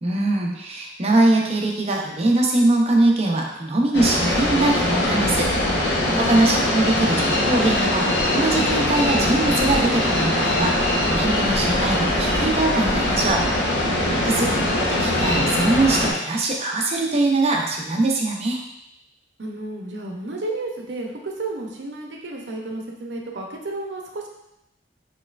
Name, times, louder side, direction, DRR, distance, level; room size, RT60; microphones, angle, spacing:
voice 1, 0.0-5.5 5.8-13.4 14.2-14.5 14.7-18.6, right 2 dB, 35° right, 0 dB, 0.5 m, -22 dB
sound 1, 3.9-16.1, left 1 dB, 75° left, 0.8 m, -21 dB
voice 2, 19.4-24.3, right 2 dB, 75° right, 1 dB, 0.6 m, -32 dB
4.2 x 3.1 x 2.4 m, 0.85 s
head